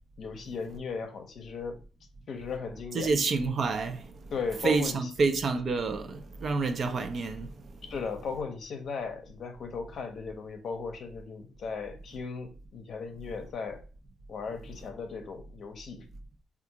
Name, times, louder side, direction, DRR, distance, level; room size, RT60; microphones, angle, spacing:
voice 1, 0.2-1.8 2.3-3.1 4.3-5.1 7.8-13.8 14.3-16.1, left 5 dB, 60° left, 0.6 m, -37 dB
voice 2, 2.9-4.0 4.6-7.5, right 4 dB, 50° right, 0.4 m, -28 dB
3.5 x 2.5 x 2.8 m
cardioid pair, 90°, 0 cm